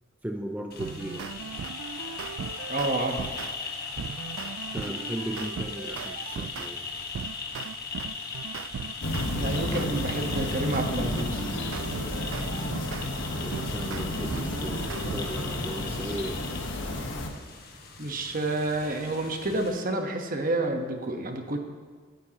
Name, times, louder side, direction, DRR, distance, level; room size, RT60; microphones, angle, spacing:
voice 1, 0.2-1.3 4.0-4.1 4.7-6.9 12.4-12.9 13.4-16.5, right 1 dB, 10° right, 2 dB, 0.6 m, -37 dB
sound 1, 0.7-19.7, left 4 dB, 50° left, 1.4 m, -39 dB
sound 2, 0.8-3.5 4.0-6.7 7.1-13.1 13.5-15.5, right 7 dB, 75° right, 0.3 m, -38 dB
voice 2, 2.7-3.3 9.3-11.4 18.0-21.6, right 2 dB, 45° right, 4 dB, 1.2 m, -29 dB
sound 3, 9.0-17.3, left 1 dB, 70° left, 1.3 m, -32 dB
19.0 x 9.2 x 3.0 m, 1.5 s
head